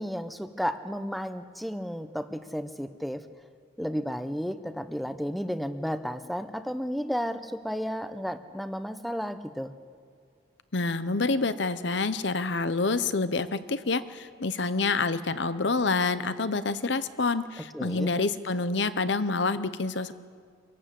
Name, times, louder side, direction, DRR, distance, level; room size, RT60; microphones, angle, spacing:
voice 1, 0.0-3.2 3.8-9.7 17.7-18.1, equal, ahead, 10 dB, 0.8 m, -33 dB
voice 2, 10.7-20.1, left 3 dB, 60° left, 13 dB, 0.9 m, -27 dB
26.0 x 18.0 x 7.6 m, 2.2 s
head